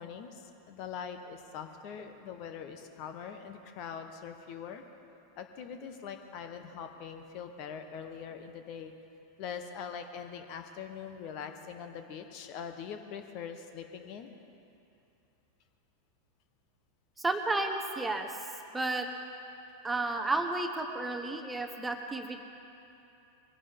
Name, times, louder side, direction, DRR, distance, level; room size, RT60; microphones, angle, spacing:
voice 1, 0.0-4.8 5.3-8.9 9.4-14.3, left 7 dB, 40° left, 7 dB, 1.2 m, -42 dB
voice 2, 17.2-18.3 18.7-19.1 19.8-22.4, right 2 dB, 10° right, 5 dB, 1.1 m, -32 dB
22.5 x 16.5 x 3.7 m, 2.8 s
figure-of-eight pair, 90°, 0 cm